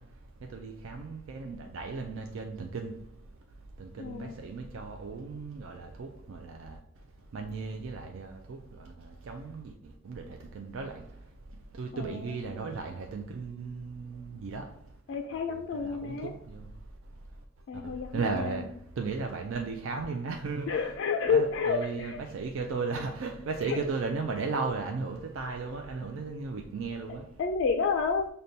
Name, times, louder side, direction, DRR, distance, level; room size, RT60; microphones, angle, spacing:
voice 1, 0.5-2.9 3.8-6.8 7.3-9.7 10.0-11.0 11.8-14.7 15.3-16.7 17.8-18.7 19.0-20.8 21.3-27.2, right 4 dB, 75° right, 0.4 m, -36 dB
voice 2, 4.0-4.4 11.9-12.4 15.1-16.4 17.7-18.7 20.7-22.2 23.7-23.8 27.4-28.3, left 5 dB, 65° left, 0.3 m, -30 dB
6.5 x 2.2 x 2.6 m
head